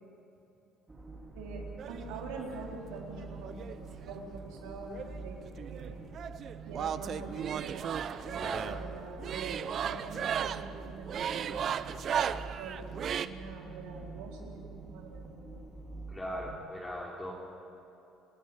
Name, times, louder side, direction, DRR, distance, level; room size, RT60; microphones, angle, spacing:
sound 1, 0.9-16.6, right 3 dB, 20° right, 3.4 m, -46 dB
voice 1, 1.3-3.8 4.1-6.0 6.7-11.9 12.5-12.9 13.2-15.6, right 3 dB, 85° right, -1 dB, 4.2 m, -45 dB
sound 2, 1.8-2.6 3.5-4.6 4.9-13.3, right 8 dB, 50° right, 0.7 m, -36 dB
voice 2, 16.1-17.3, equal, 15° left, -4 dB, 3.3 m, -39 dB
28.5 x 10.5 x 9.1 m, 3.0 s
supercardioid pair, 90°, 0 cm